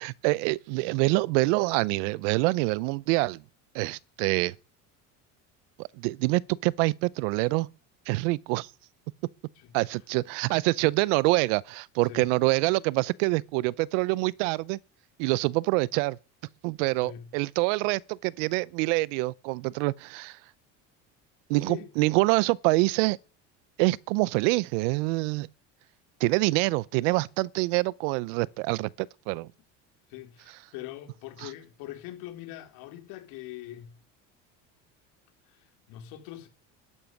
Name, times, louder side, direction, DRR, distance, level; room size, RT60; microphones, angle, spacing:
voice 1, 0.0-3.4 3.7-4.5 5.8-7.7 8.1-8.7 9.7-14.8 15.2-16.2 16.6-20.4 21.5-23.2 23.8-25.5 26.2-29.5, right 23 dB, 85° right, 0.7 m, -26 dB
voice 2, 9.6-10.0 12.0-12.2 17.0-17.3 21.6-21.9 30.1-33.9 35.5-36.5, left 13 dB, 75° left, 4.1 m, -43 dB
13.5 x 11.5 x 9.3 m
supercardioid pair, 115°, 36 cm